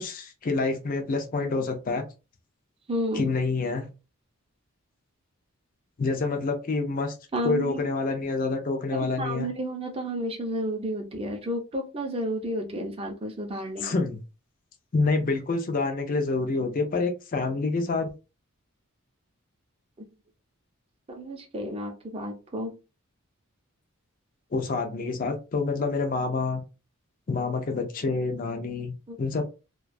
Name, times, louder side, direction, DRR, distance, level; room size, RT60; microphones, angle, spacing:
voice 1, 0.0-2.0 3.1-3.9 6.0-7.1 7.4-9.5 13.8-14.2 14.9-18.1 24.5-26.6 27.3-28.9 29.2-29.5, left 3 dB, 40° left, 5 dB, 0.4 m, -27 dB
voice 2, 2.9-3.3 7.3-7.9 9.2-13.9 20.0-20.1 21.1-22.7 29.1-29.2, equal, 25° right, 3 dB, 0.5 m, -31 dB
2.3 x 2.2 x 2.5 m, 0.29 s
head